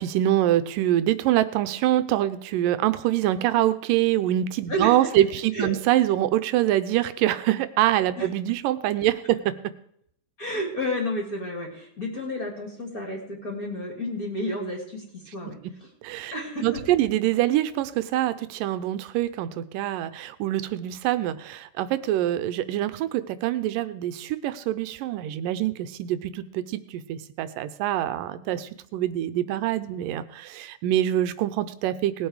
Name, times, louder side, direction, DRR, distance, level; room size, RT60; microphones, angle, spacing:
voice 1, 0.0-9.6 16.0-16.3 16.6-32.3, right 13 dB, 85° right, 12 dB, 2.4 m, -25 dB
voice 2, 4.7-5.2 5.5-5.7 8.2-8.3 10.4-15.6 16.3-16.8, equal, 25° left, 0 dB, 3.0 m, -31 dB
19.0 x 8.1 x 4.9 m, 0.69 s
omnidirectional pair, 3.9 m